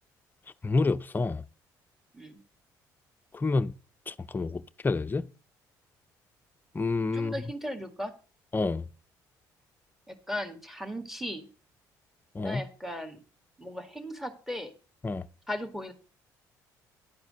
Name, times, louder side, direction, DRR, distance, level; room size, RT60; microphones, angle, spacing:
voice 1, 0.6-1.4 3.3-3.7 4.1-5.3 6.7-7.3 8.5-8.8 12.3-12.6 15.0-15.3, left 3 dB, 25° left, 0.6 m, -28 dB
voice 2, 7.1-8.1 10.1-11.5 12.4-13.2 13.6-14.7 15.5-15.9, equal, 5° right, 1.9 m, -37 dB
11.0 x 4.8 x 7.6 m
supercardioid pair, 65°, 8 cm